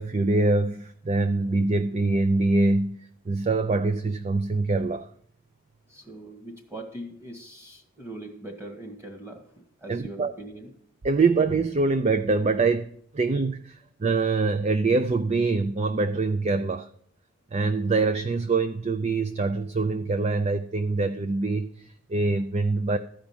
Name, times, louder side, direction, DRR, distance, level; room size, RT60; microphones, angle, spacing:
voice 1, 0.0-3.0 3.3-5.1 9.9-10.3 11.0-12.9 13.1-16.9 17.5-23.0, right 3 dB, 30° right, 10 dB, 0.4 m, -24 dB
voice 2, 5.9-10.7, right 1 dB, 10° right, 4 dB, 1.7 m, -41 dB
13.5 x 5.1 x 8.7 m, 0.65 s
head